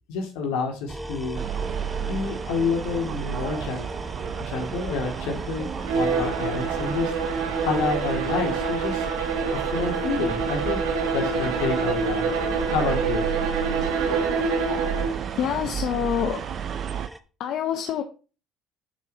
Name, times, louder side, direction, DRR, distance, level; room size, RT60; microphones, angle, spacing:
voice 1, 0.1-1.4 2.1-3.9 4.4-5.7 5.9-7.1 7.6-9.1 9.5-10.8 11.1-12.2 12.7-13.2, left 4 dB, 80° left, 2.3 m, -28 dB
sound 1, 0.9-17.2, right 1 dB, 5° right, 0.9 m, -40 dB
sound 2, 1.3-17.1, right 8 dB, 55° right, 0.7 m, -33 dB
Bowed string instrument, 5.8-15.3, right 4 dB, 90° right, 1.5 m, -26 dB
voice 2, 15.4-16.4 17.4-18.0, left 9 dB, 60° left, 0.8 m, -27 dB
6.7 x 6.6 x 4.1 m
supercardioid pair, 90°, 0 cm